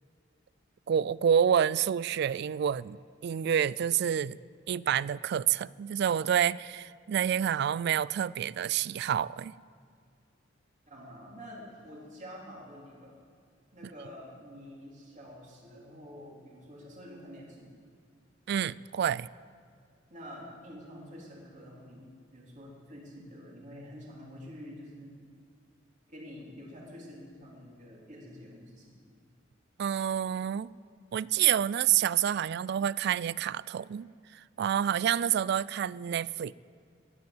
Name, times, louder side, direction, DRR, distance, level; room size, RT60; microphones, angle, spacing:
voice 1, 0.9-4.4 4.7-9.5 18.5-19.3 29.8-30.7 31.1-34.1 34.3-36.5, right 9 dB, 55° right, 21 dB, 0.3 m, -28 dB
voice 2, 10.9-13.2 13.7-17.7 20.1-22.1 22.3-25.2 26.1-29.0, equal, 40° right, -3 dB, 3.4 m, -47 dB
14.5 x 10.5 x 7.8 m, 2.3 s
head